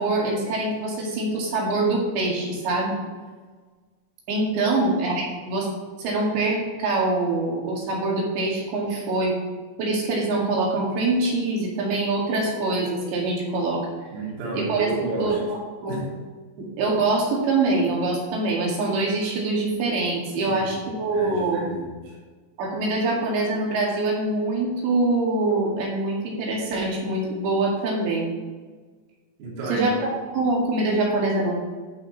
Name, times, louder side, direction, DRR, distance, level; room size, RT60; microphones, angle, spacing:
voice 1, 0.0-3.0 4.3-5.7 6.0-9.3 9.8-13.9 14.5-14.9 15.2-15.3 15.8-16.0 16.6-21.6 22.6-28.3 29.7-31.6, right 2 dB, 65° right, -3 dB, 4.0 m, -24 dB
voice 2, 14.1-15.5 15.9-16.2 20.5-22.2 29.4-29.9, right 2 dB, 85° right, -4 dB, 5.4 m, -31 dB
12.0 x 8.5 x 3.1 m, 1.4 s
omnidirectional pair, 6.0 m